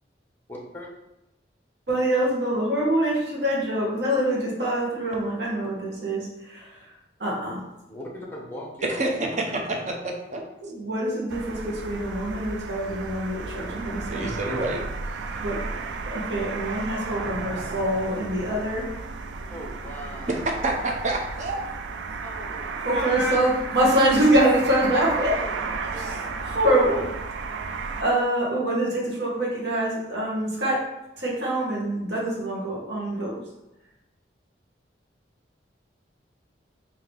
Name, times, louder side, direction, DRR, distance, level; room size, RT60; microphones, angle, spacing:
voice 1, 0.5-0.9 7.9-9.4 19.5-20.7 22.2-23.7 25.3-26.6, left 1 dB, 10° left, -2 dB, 0.6 m, -41 dB
voice 2, 1.9-6.8 7.2-7.6 10.6-14.6 15.4-15.8 16.1-18.9 22.8-25.3 25.9-27.1 28.0-30.8 31.2-33.4, right 1 dB, 65° right, -4 dB, 1.2 m, -25 dB
voice 3, 8.9-10.4 14.1-14.8 20.3-20.4 20.6-21.6, right 2 dB, 40° right, 1 dB, 0.6 m, -28 dB
sound 1, 11.3-28.0, right 4 dB, 90° right, 0.3 m, -33 dB
3.7 x 2.8 x 3.3 m, 0.93 s
head